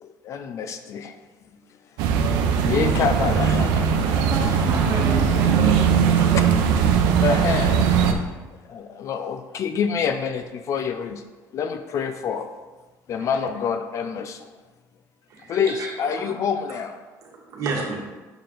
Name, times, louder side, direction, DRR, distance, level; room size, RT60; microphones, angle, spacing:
voice 1, 0.0-1.2 2.4-4.3 7.2-8.0 8.7-11.2 11.5-12.5 13.1-14.5 15.5-17.0, left 6 dB, 45° left, 8 dB, 0.4 m, -27 dB
sound 1, 2.0-8.1, right 7 dB, 85° right, 0.6 m, -20 dB
voice 2, 4.3-6.7 13.3-13.4, right 1 dB, 35° right, -2 dB, 1.6 m, -32 dB
voice 3, 5.5-6.5 15.3-15.9 16.2-16.3 17.2-18.0, right 3 dB, 55° right, -1 dB, 1.5 m, -31 dB
6.7 x 4.6 x 3.8 m, 1.2 s
cardioid pair, 130°, 7 cm